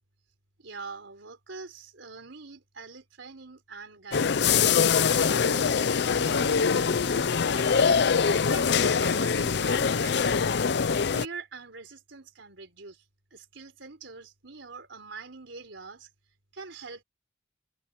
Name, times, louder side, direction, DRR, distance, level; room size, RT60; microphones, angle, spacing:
voice 1, 0.6-4.6 5.1-7.9 8.5-13.0 13.3-16.1 16.5-17.0, right 4 dB, 85° right, 3.8 m, -44 dB
sound 1, 4.1-11.3, left 6 dB, 65° left, 0.5 m, -23 dB
Bowed string instrument, 5.8-9.8, right 1 dB, 20° right, 5.4 m, -50 dB
head